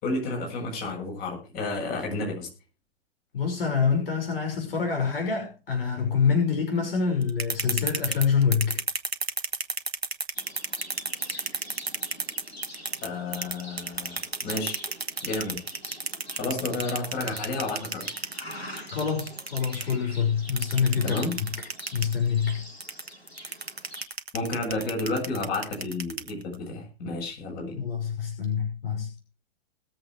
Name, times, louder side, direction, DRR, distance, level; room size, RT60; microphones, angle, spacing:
voice 1, 0.0-2.5 13.0-14.8 15.2-15.6 16.4-18.1 21.0-21.4 24.3-27.8, left 2 dB, 30° left, 7.7 m, -31 dB
voice 2, 3.3-8.8 18.5-18.6 18.9-21.5 21.9-22.6 27.8-29.1, left 6 dB, 65° left, 5.8 m, -26 dB
sound 1, 7.2-13.1 13.3-19.9 20.5-22.2 22.8-26.5, right 3 dB, 90° right, 1.6 m, -31 dB
Livestock farm animals working animals, 10.3-24.0, left 1 dB, 90° left, 4.8 m, -45 dB
20.5 x 7.8 x 4.7 m
figure-of-eight pair, 115°, 30 cm